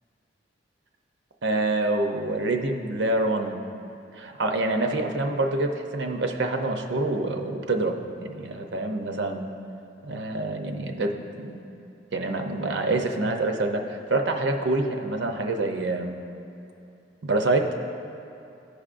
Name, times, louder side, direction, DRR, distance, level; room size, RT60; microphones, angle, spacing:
voice 1, 1.4-3.6 4.1-9.5 10.0-11.6 12.1-16.2 17.2-17.8, right 2 dB, 65° right, 4 dB, 0.6 m, -26 dB
14.5 x 5.0 x 2.5 m, 2.8 s
head